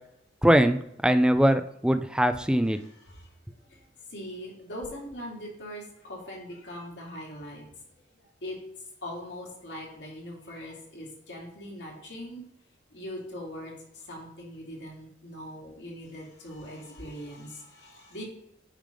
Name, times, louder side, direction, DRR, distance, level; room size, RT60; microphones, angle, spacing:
voice 1, 0.4-2.8, equal, 5° right, 9 dB, 0.4 m, -22 dB
voice 2, 2.8-3.3 3.7-3.8 4.1-7.6 8.2-8.6 9.0-12.4 12.9-18.2, equal, 65° left, -2 dB, 2.3 m, -41 dB
8.9 x 3.4 x 5.2 m, 0.80 s
head